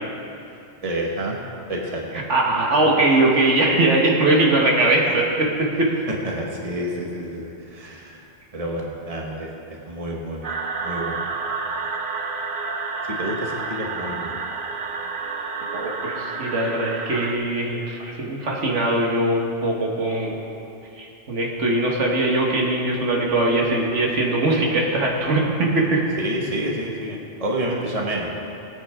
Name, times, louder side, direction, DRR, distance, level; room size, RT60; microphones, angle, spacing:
voice 1, 0.8-1.4 1.7-2.2 6.1-8.3 8.5-10.5 10.8-11.2 13.0-14.4 26.2-28.4, right 1 dB, 30° right, -2 dB, 1.4 m, -29 dB
voice 2, 2.3-5.9 15.7-20.4 21.0-26.0, right 2 dB, 75° right, -1 dB, 1.8 m, -21 dB
sound 1, 10.4-17.3, right 4 dB, 50° right, 0.9 m, -29 dB
18.5 x 8.8 x 3.6 m, 2.7 s
omnidirectional pair, 1.2 m